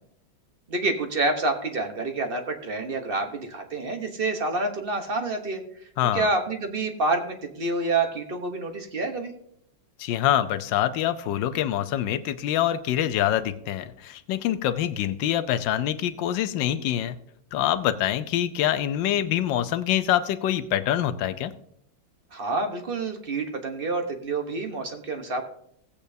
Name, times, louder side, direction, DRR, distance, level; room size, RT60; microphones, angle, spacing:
voice 1, 0.7-5.6 6.1-9.3 22.3-25.4, right 3 dB, 40° right, 5 dB, 0.9 m, -28 dB
voice 2, 6.0-6.3 10.0-17.2 17.5-21.5, left 11 dB, 75° left, 12 dB, 1.3 m, -25 dB
17.0 x 8.5 x 2.7 m, 0.71 s
omnidirectional pair, 2.2 m